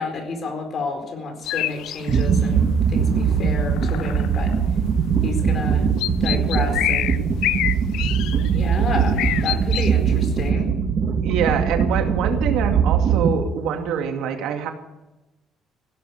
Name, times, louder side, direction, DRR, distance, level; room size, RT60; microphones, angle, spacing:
voice 1, 0.0-4.5 5.2-5.9 6.2-7.1 8.5-10.7, left 3 dB, 45° left, 5 dB, 4.4 m, -30 dB
sound 1, 1.5-2.4 2.8-2.9 3.2-3.5 3.8-4.7 5.4-5.5 5.8-8.8 9.1-9.9, left 14 dB, 85° left, 0.6 m, -26 dB
sound 2, 2.1-13.3, right 6 dB, 45° right, 2.5 m, -21 dB
voice 2, 11.2-14.7, right 7 dB, 85° right, 4 dB, 2.4 m, -25 dB
16.5 x 11.5 x 6.8 m, 1.0 s
cardioid pair, 130°, 0 cm